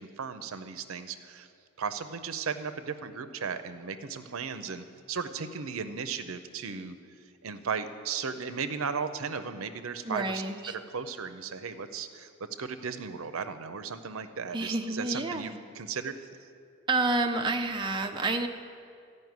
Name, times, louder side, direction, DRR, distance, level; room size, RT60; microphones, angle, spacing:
voice 1, 0.2-1.5 1.8-7.0 7.4-10.4 10.9-16.2, right 5 dB, 70° right, 10 dB, 0.6 m, -36 dB
voice 2, 10.0-10.8 14.5-15.6 16.9-18.5, right 2 dB, 20° right, 3 dB, 0.5 m, -29 dB
14.0 x 5.4 x 9.4 m, 2.3 s
head